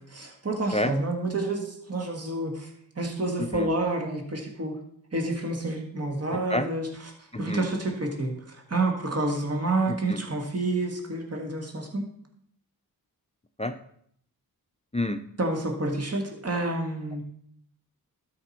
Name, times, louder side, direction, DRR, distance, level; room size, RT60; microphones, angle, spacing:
voice 1, 0.1-2.7 3.0-4.8 5.1-7.1 7.4-12.1 15.4-17.2, right 2 dB, 40° right, 2 dB, 2.0 m, -29 dB
voice 2, 7.3-7.6 10.1-10.2 13.6-13.7 14.9-15.2, left 1 dB, 15° left, 7 dB, 0.6 m, -27 dB
12.5 x 5.1 x 4.4 m, 0.67 s
cardioid pair, 55°, 38 cm